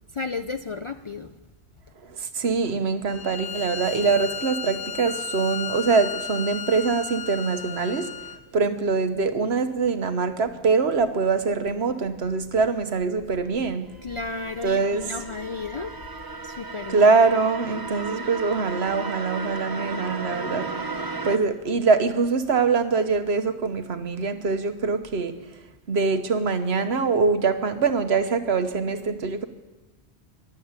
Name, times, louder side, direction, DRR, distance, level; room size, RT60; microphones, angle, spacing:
voice 1, 0.1-1.3 14.0-16.0 16.3-17.1, left 4 dB, 40° left, 9 dB, 0.4 m, -33 dB
voice 2, 2.1-13.9 14.6-15.1 16.9-20.7 21.2-25.5 25.9-29.4, right 4 dB, 75° right, 9 dB, 1.3 m, -23 dB
Bowed string instrument, 3.1-8.4, left 7 dB, 85° left, 1.0 m, -34 dB
sound 1, 13.7-21.4, right 4 dB, 25° right, 0.7 m, -35 dB
13.5 x 11.5 x 8.9 m, 1.1 s
omnidirectional pair, 1.1 m